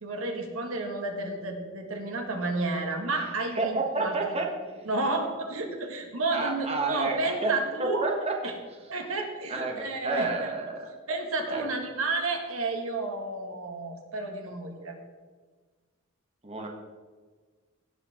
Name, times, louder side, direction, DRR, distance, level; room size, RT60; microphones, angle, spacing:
voice 1, 0.0-4.4 4.8-8.1 8.4-8.5 8.9-10.5 11.1-15.0, right 2 dB, 75° right, 3 dB, 1.9 m, -31 dB
voice 2, 3.5-4.5 6.3-7.5 7.8-8.3 9.5-10.9 11.5-11.6 16.4-16.7, right 3 dB, 30° right, 1 dB, 1.3 m, -29 dB
17.5 x 8.0 x 3.7 m, 1.4 s
head